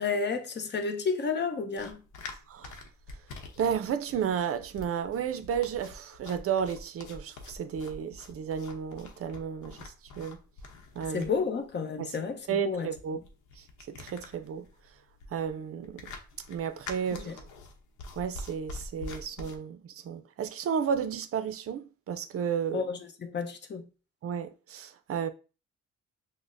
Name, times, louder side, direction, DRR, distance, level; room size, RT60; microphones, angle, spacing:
voice 1, 0.0-2.0 11.1-12.9 17.2-17.4 22.7-23.9, left 5 dB, 35° left, 0.8 m, -31 dB
sound 1, 1.8-19.6, left 3 dB, 85° left, 0.8 m, -46 dB
voice 2, 2.5-2.8 3.6-10.4 11.0-11.3 12.0-12.2 12.5-13.2 13.6-14.7 15.3-16.1 16.5-17.5 18.2-22.9 24.2-25.3, right 7 dB, 50° right, 0.5 m, -33 dB
5.9 x 2.1 x 2.5 m
cardioid pair, 90°, 30 cm